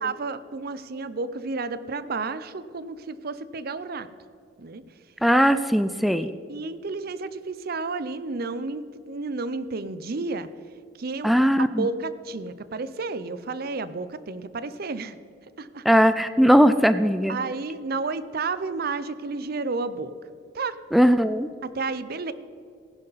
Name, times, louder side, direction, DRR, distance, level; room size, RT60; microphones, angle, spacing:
voice 1, 0.0-4.1 4.6-4.8 6.2-10.5 11.0-11.3 11.8-15.2 15.6-15.8 17.3-20.1 20.5-20.8 21.6-22.3, right 3 dB, 55° right, 14 dB, 0.6 m, -31 dB
voice 2, 5.2-6.3 11.2-11.9 15.9-17.4 20.9-21.5, equal, ahead, 11 dB, 0.3 m, -19 dB
15.0 x 11.0 x 4.1 m, 2.4 s
head